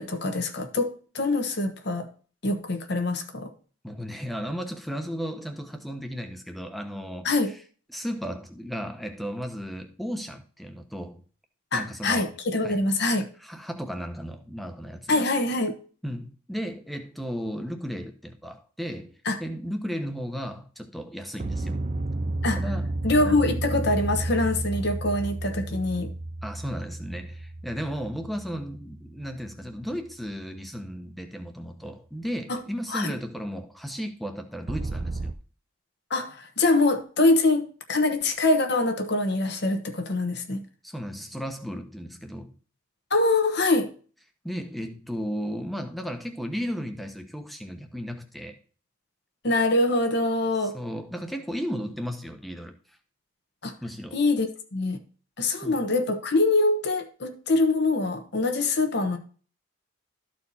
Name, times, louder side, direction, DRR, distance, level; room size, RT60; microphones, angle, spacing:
voice 1, 0.0-2.1 2.4-3.5 7.2-7.6 11.7-13.3 15.1-15.8 19.3-19.4 22.4-22.6 23.0-26.1 32.5-32.6 32.9-33.1 36.1-40.6 43.1-43.9 49.4-50.8 53.6-53.7 54.1-55.0 55.4-59.2, left 2 dB, 50° left, 1.0 m, -24 dB
voice 2, 3.8-7.6 7.9-11.2 11.7-12.3 12.6-12.8 13.4-15.2 16.0-19.1 19.4-21.8 22.5-22.9 26.4-35.3 40.8-42.5 44.4-48.6 50.6-52.8 53.8-54.2 55.5-55.9, equal, ahead, 0.9 m, -34 dB
sound 1, 21.4-29.8 34.7-35.3, right 2 dB, 35° right, 0.4 m, -32 dB
13.0 x 4.5 x 4.2 m
head